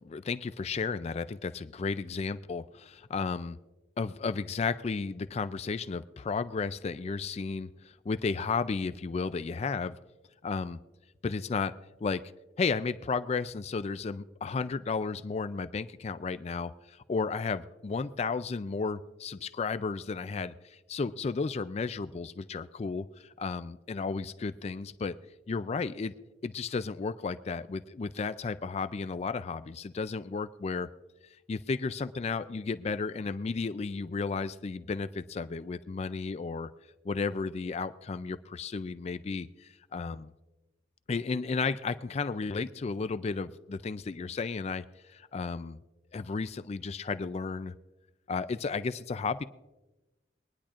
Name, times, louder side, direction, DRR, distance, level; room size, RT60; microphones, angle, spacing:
voice 1, 0.0-3.6 4.0-10.0 10.4-10.8 11.2-11.7 12.0-12.2 12.6-25.2 25.5-26.1 26.4-30.9 31.5-36.7 37.0-40.3 41.1-45.8 46.1-47.7 48.3-49.5, left 4 dB, 35° left, 13 dB, 0.3 m, -33 dB
23.5 x 10.0 x 2.5 m, 1.1 s
head